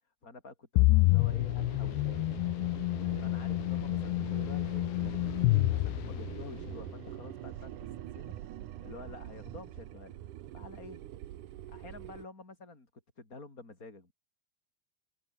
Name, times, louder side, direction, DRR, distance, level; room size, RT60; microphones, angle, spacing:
voice 1, 0.2-2.3 3.2-8.3 8.6-10.1 10.5-11.0 11.7-12.9 13.2-14.1, left 3 dB, 20° left, 4.8 m, -49 dB
sound 1, 0.8-6.7, left 23 dB, 85° left, 2.5 m, -28 dB
sound 2, 1.2-12.3, right 13 dB, 65° right, 2.1 m, -44 dB
omnidirectional pair, 4.8 m